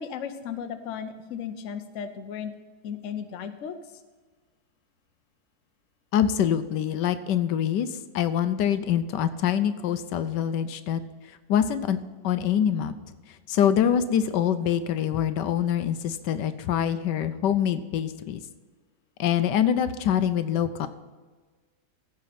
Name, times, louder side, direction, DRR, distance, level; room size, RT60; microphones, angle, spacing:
voice 1, 0.0-2.5 2.8-3.7, left 7 dB, 55° left, 8 dB, 1.0 m, -35 dB
voice 2, 6.1-12.0 12.2-12.9 13.3-18.4 19.2-20.9, left 9 dB, 85° left, 11 dB, 1.3 m, -25 dB
15.5 x 5.3 x 5.8 m, 1.4 s
omnidirectional pair, 1.9 m